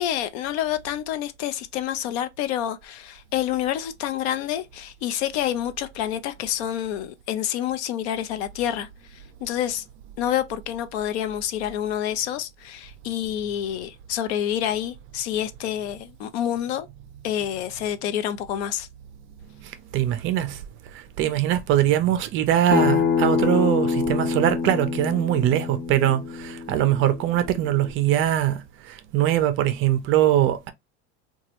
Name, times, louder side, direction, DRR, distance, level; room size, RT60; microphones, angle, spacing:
voice 1, 0.0-8.9 9.4-9.8 10.2-16.9 17.2-18.9, left 11 dB, 70° left, 0.6 m, -28 dB
voice 2, 19.9-20.6 20.9-28.6 28.9-30.7, right 12 dB, 35° right, 0.4 m, -22 dB
Acoustic guitar, 22.7-27.9, left 5 dB, 35° left, 0.9 m, -26 dB
2.9 x 2.3 x 2.8 m
supercardioid pair, 125°, 34 cm